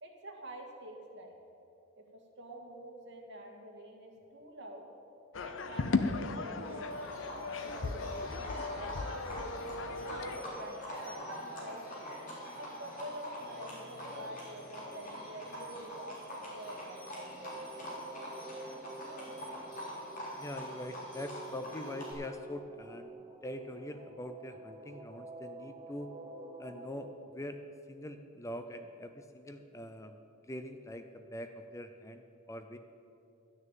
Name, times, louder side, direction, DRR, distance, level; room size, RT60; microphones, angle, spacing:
voice 1, 0.0-1.4 2.0-4.9 5.4-7.1 7.6-9.0 9.4-11.8 12.5-17.6, right 1 dB, 60° right, 1 dB, 1.9 m, -47 dB
sound 1, 5.3-10.4, left 3 dB, 65° left, 0.6 m, -36 dB
Livestock farm animals working animals, 6.6-22.1, equal, 40° left, 3.6 m, -44 dB
sound 2, 16.6-27.1, right 2 dB, 20° right, 0.7 m, -49 dB
voice 2, 20.4-23.1 23.4-26.1 26.6-27.1 27.3-27.6 27.9-30.2 30.5-32.8, left 1 dB, 15° left, 7 dB, 0.5 m, -43 dB
12.5 x 6.5 x 9.0 m, 2.7 s
head